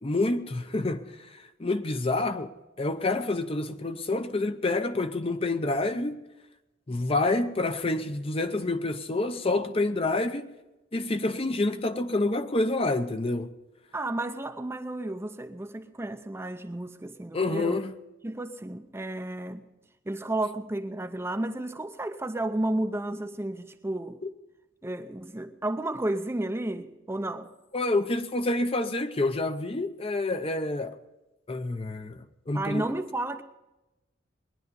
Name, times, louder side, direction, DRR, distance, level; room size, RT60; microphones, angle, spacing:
voice 1, 0.0-1.1 1.6-2.5 2.8-6.2 6.9-10.5 10.9-13.5 17.3-17.9 27.7-31.0 31.5-32.9, left 2 dB, 30° left, 0.7 m, -28 dB
voice 2, 13.9-17.8 18.2-19.6 20.1-24.2 24.8-27.5 32.5-33.4, right 1 dB, 15° right, 0.6 m, -32 dB
21.0 x 11.0 x 5.3 m
head